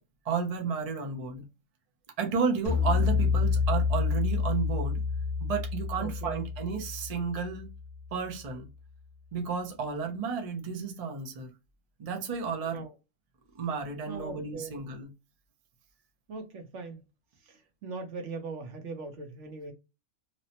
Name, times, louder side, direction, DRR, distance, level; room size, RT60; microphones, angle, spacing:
voice 1, 0.2-1.5 2.2-5.0 5.4-7.7 8.1-8.7 9.3-11.5 12.0-12.8 13.5-15.1, right 5 dB, 45° right, 0.5 m, -32 dB
sound 1, 2.7-8.1, left 5 dB, 40° left, 1.0 m, -28 dB
voice 2, 6.0-6.4 12.6-12.9 14.1-14.7 16.3-17.0 17.5-19.7, right 4 dB, 60° right, 1.0 m, -40 dB
3.0 x 2.0 x 2.8 m
omnidirectional pair, 1.4 m